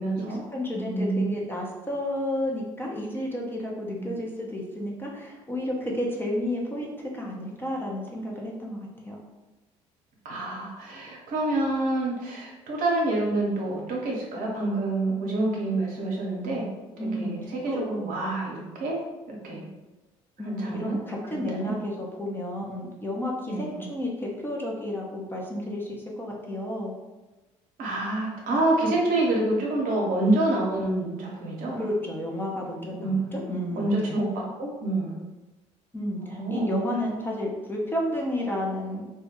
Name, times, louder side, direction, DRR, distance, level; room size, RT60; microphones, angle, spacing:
voice 1, 0.0-0.4 0.7-1.2 3.9-4.1 10.2-16.7 17.0-19.7 20.4-21.7 23.5-23.8 27.8-31.8 33.0-35.2 36.2-36.7, right 2 dB, 55° right, -2 dB, 0.8 m, -27 dB
voice 2, 0.5-9.2 16.9-17.8 20.4-26.9 31.7-34.2 35.9-39.0, left 1 dB, 15° left, -2 dB, 0.6 m, -31 dB
2.2 x 2.1 x 2.9 m, 1.1 s
hypercardioid pair, 55°, 17 cm